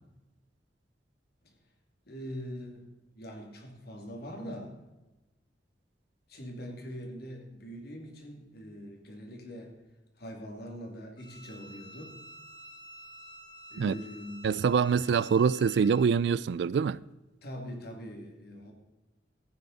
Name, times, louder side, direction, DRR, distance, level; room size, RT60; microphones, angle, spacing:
voice 1, 2.1-2.8 3.1-4.8 6.3-9.7 10.2-12.2 13.7-14.5 17.4-18.7, equal, 60° left, 2.5 m, -42 dB
Bowed string instrument, 11.2-16.1, equal, 25° left, 1.4 m, -50 dB
voice 2, 14.4-17.0, right 6 dB, 70° right, 0.3 m, -25 dB
14.5 x 9.4 x 4.0 m
head